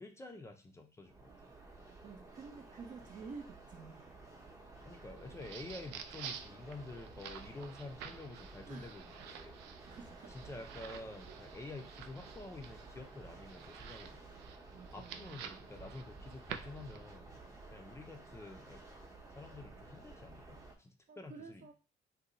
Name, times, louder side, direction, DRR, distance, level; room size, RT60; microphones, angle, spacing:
voice 1, 0.0-1.3 4.8-9.6 10.3-14.2 14.9-17.4 17.7-18.8 19.3-20.9 21.2-21.7, left 2 dB, 15° left, 4 dB, 0.5 m, -49 dB
sound 1, 1.0-20.8, right 3 dB, 20° right, 0.7 m, -54 dB
voice 2, 2.0-4.1 4.9-5.0 8.7-9.0 9.9-10.4 11.3-11.4 14.7-15.4 21.1-21.7, right 5 dB, 50° right, 5 dB, 0.7 m, -51 dB
sound 2, 5.2-17.2, right 8 dB, 90° right, 0.4 m, -51 dB
2.7 x 2.2 x 3.9 m, 0.33 s
cardioid pair, 110°, 17 cm